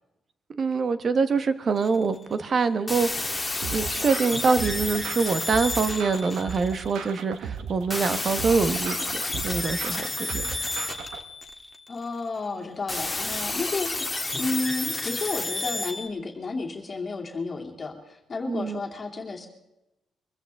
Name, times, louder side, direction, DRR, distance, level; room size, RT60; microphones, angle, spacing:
voice 1, 0.5-3.4 3.7-10.1 10.3-10.4 18.5-18.8, right 4 dB, 40° right, 11 dB, 1.1 m, -25 dB
sound 1, 1.8-2.2 2.9-7.1 7.9-12.0 12.9-16.1, left 2 dB, 10° left, 1.7 m, -31 dB
sound 2, 3.6-11.2, right 7 dB, 85° right, 1.3 m, -37 dB
voice 2, 11.9-19.5, left 3 dB, 30° left, 1 dB, 2.6 m, -32 dB
24.0 x 14.5 x 3.5 m, 0.94 s
cardioid pair, 125°, 0 cm